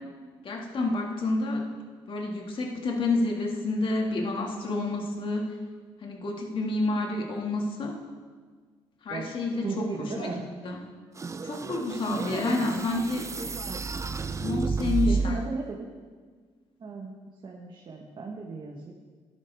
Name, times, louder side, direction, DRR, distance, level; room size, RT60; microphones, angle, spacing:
voice 1, 0.4-1.6 2.1-5.5 6.0-7.9 9.0-10.8 11.4-13.3 14.4-15.4, left 2 dB, 55° left, 1 dB, 2.2 m, -29 dB
voice 2, 9.6-10.4 12.1-12.6 15.0-15.9 16.8-18.9, right 4 dB, 50° right, -1 dB, 1.4 m, -35 dB
sound 1, 11.2-15.5, right 4 dB, 30° right, 0.6 m, -31 dB
13.0 x 10.5 x 3.6 m, 1.5 s
supercardioid pair, 70°, 11 cm